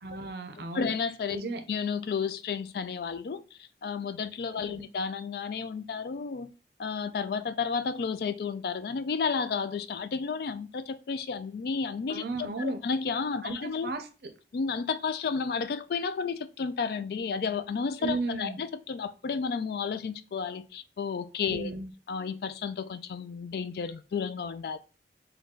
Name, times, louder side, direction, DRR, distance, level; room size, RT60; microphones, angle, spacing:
voice 1, 0.0-0.9 1.3-1.6 4.7-4.9 12.1-12.8 13.4-14.3 18.0-18.6 21.5-21.9, right 2 dB, 60° right, 0.6 m, -34 dB
voice 2, 0.6-1.4 1.7-6.5 6.8-13.9 14.5-21.7 22.1-24.8, left 5 dB, 60° left, 0.3 m, -32 dB
3.9 x 2.3 x 3.7 m
head